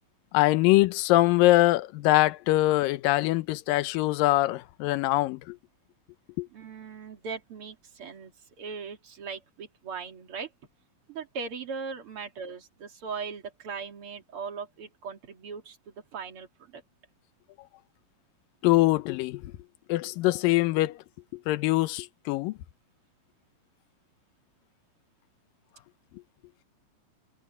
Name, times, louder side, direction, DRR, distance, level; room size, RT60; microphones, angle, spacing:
voice 1, 0.3-5.6 6.4-6.5 18.6-19.5 19.9-21.0 21.5-22.5, left 18 dB, 75° left, 2.4 m, -23 dB
voice 2, 6.5-8.3 8.6-10.5 11.1-15.8 16.1-16.8, right 5 dB, 40° right, 2.9 m, -39 dB
omnidirectional pair, 4.3 m